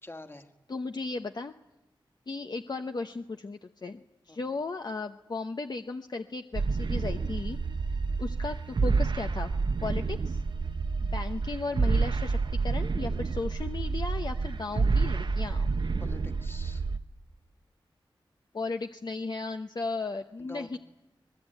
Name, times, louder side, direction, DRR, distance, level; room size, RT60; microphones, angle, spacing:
voice 1, 0.0-0.5 4.3-4.6 16.0-16.9 20.4-20.8, left 2 dB, 25° left, 7 dB, 2.0 m, -46 dB
voice 2, 0.7-1.5 2.3-7.6 8.2-9.5 9.8-10.4 11.0-15.7 18.5-20.8, left 3 dB, 50° left, 6 dB, 0.9 m, -35 dB
sound 1, 6.5-17.0, right 4 dB, 60° right, 0.9 m, -29 dB
24.0 x 20.5 x 9.2 m, 0.95 s
wide cardioid pair, 95°, 9 cm